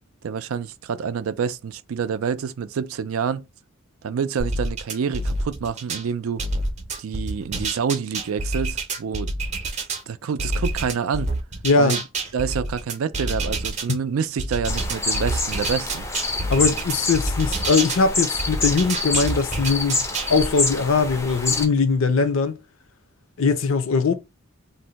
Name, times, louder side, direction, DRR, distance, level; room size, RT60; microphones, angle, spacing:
voice 1, 0.2-3.4 4.0-6.4 7.0-9.4 10.1-11.3 11.8-12.0 12.3-16.1, right 6 dB, 80° right, 0.4 m, -27 dB
sound 1, 4.4-6.0 6.4-10.0 10.4-13.9 14.4-18.0 18.4-20.3, right 2 dB, 35° right, 0.6 m, -27 dB
voice 2, 11.6-12.0 16.5-20.0 20.3-22.5 23.4-24.1, left 4 dB, 70° left, 0.5 m, -20 dB
sound 2, 14.7-21.7, left 3 dB, 15° left, 0.4 m, -27 dB
2.6 x 2.1 x 3.9 m
head